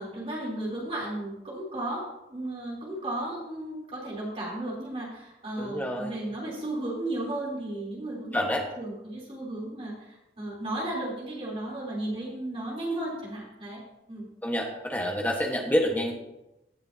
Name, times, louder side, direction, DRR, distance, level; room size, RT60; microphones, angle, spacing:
voice 1, 0.0-13.8 14.1-14.3, right 1 dB, 35° right, -4 dB, 3.3 m, -34 dB
voice 2, 5.6-6.1 8.3-8.6 14.4-16.1, equal, 10° left, 0 dB, 1.3 m, -27 dB
17.5 x 6.8 x 2.8 m, 0.94 s
head